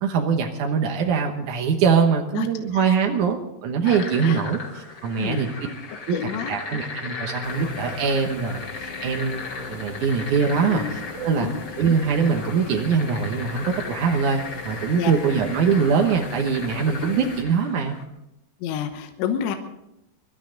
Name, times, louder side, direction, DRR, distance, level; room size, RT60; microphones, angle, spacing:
voice 1, 0.0-5.5 6.1-6.2 6.5-11.5 11.8-18.0, right 6 dB, 75° right, 3 dB, 1.8 m, -23 dB
voice 2, 2.4-2.7 3.8-4.4 5.2-5.5 6.1-6.6 10.7-10.9 11.3-11.6 15.0-15.1 18.6-19.6, left 9 dB, 80° left, 6 dB, 3.4 m, -29 dB
sound 1, 3.8-18.0, left 3 dB, 35° left, 3.1 m, -37 dB
sound 2, 7.4-17.4, left 4 dB, 55° left, 3.9 m, -40 dB
24.5 x 13.0 x 3.9 m, 0.86 s
omnidirectional pair, 5.1 m